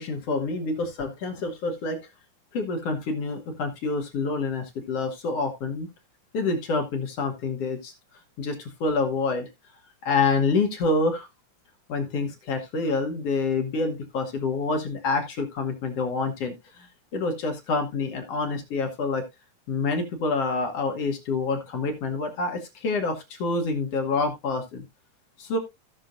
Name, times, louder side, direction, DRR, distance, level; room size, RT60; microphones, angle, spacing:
voice 1, 0.0-2.0 2.5-5.9 6.3-7.9 8.4-9.5 10.0-11.3 11.9-16.9 17.1-19.2 19.7-24.8 25.4-25.6, left 3 dB, 60° left, 4 dB, 2.2 m, -27 dB
16.0 x 6.1 x 2.5 m, 0.21 s
omnidirectional pair, 3.3 m